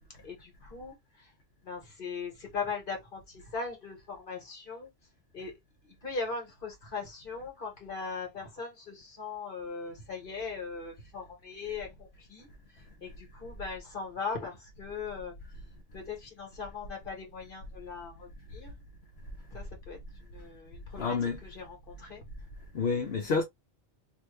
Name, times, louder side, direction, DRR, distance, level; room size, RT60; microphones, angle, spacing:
voice 1, 0.2-1.3 1.6-4.9 5.3-5.5 5.9-12.5 13.0-15.3 15.9-18.7 19.5-20.0 20.3-21.2 21.4-22.2, left 4 dB, 50° left, 1.5 m, -39 dB
voice 2, 21.0-21.4 22.7-23.4, left 4 dB, 65° left, 0.9 m, -28 dB
3.0 x 2.3 x 3.1 m
omnidirectional pair, 1.2 m